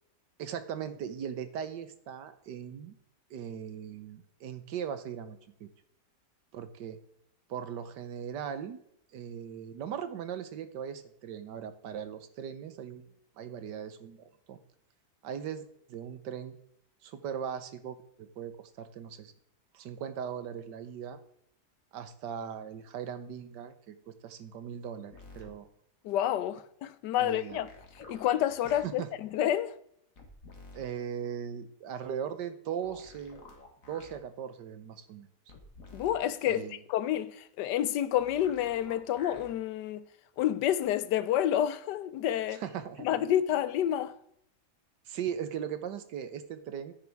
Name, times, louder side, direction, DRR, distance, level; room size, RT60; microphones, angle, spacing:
voice 1, 0.4-3.0 3.3-5.7 6.5-7.0 7.5-8.8 9.1-13.0 13.4-14.6 15.2-15.6 15.9-16.5 17.0-18.5 18.8-19.3 19.7-21.2 21.9-25.7 27.2-27.6 28.8-29.1 30.7-33.4 33.9-35.3 36.5-36.8 42.5-43.1 45.1-46.9, right 8 dB, 90° right, 1.6 m, -39 dB
sound 1, 25.1-25.5 27.5-28.8 30.2-30.8 32.8-34.2 35.5-36.2 38.2-39.5 40.8-40.9, left 3 dB, 55° left, 2.1 m, -51 dB
voice 2, 26.0-27.7 28.1-29.8 35.9-40.0 40.4-42.6 43.0-44.2, left 11 dB, 90° left, 1.3 m, -29 dB
10.5 x 9.2 x 3.5 m
omnidirectional pair, 1.8 m